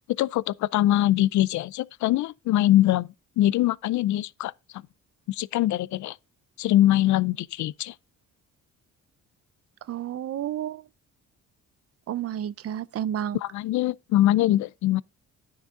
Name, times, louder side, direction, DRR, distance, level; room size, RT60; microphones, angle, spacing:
voice 1, 0.2-3.1 3.4-4.5 5.3-6.2 6.6-7.9 13.3-15.0, left 14 dB, 70° left, 0.5 m, -23 dB
voice 2, 9.9-10.8 12.1-13.4, right 10 dB, 50° right, 0.5 m, -31 dB
9.9 x 6.5 x 3.7 m
cardioid pair, 90°, 30 cm